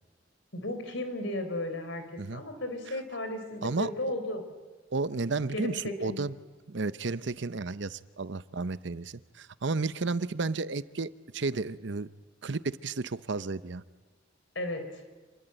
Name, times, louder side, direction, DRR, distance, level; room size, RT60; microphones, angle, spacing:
voice 1, 0.5-4.4 5.5-6.2 14.5-14.8, left 1 dB, 65° left, 8 dB, 4.2 m, -34 dB
voice 2, 4.9-6.3 6.7-12.1 12.4-13.8, right 3 dB, 60° right, 15 dB, 0.8 m, -32 dB
28.0 x 21.5 x 9.1 m, 1.3 s
head